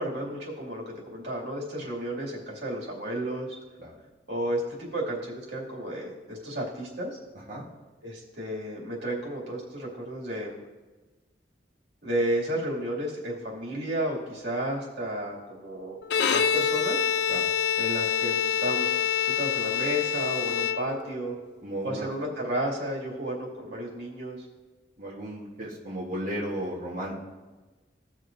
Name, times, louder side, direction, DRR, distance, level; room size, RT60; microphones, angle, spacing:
voice 1, 0.0-3.6 4.3-7.1 8.0-10.6 12.0-17.0 17.8-21.3 21.8-24.5, right 1 dB, 75° right, -3 dB, 2.4 m, -32 dB
Bowed string instrument, 16.0-21.3, left 8 dB, 70° left, 0.4 m, -26 dB
voice 2, 21.6-22.1 25.0-27.1, right 1 dB, 45° right, -7 dB, 1.3 m, -34 dB
16.5 x 6.3 x 2.6 m, 1.2 s
head